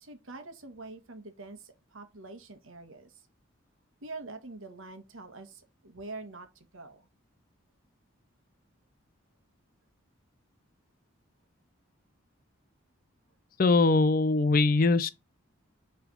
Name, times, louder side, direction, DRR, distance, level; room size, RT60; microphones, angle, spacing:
voice 1, 0.0-3.1 4.0-6.5 6.7-7.1, right 3 dB, 75° right, 1.3 m, -45 dB
voice 2, 13.6-15.1, left 3 dB, 40° left, 0.5 m, -22 dB
5.8 x 3.4 x 5.2 m
head